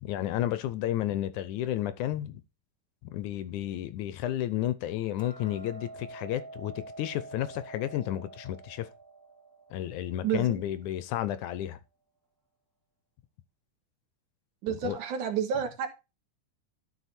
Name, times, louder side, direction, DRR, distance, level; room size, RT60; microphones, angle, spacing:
voice 1, 0.0-2.4 3.0-8.9 9.7-11.8 14.7-15.0, left 12 dB, 75° left, 2.1 m, -32 dB
Hammer, 5.2-11.4, right 2 dB, 5° left, 2.8 m, -47 dB
voice 2, 10.2-10.6 14.6-15.9, right 7 dB, 70° right, 2.9 m, -30 dB
12.5 x 5.3 x 4.3 m
omnidirectional pair, 3.7 m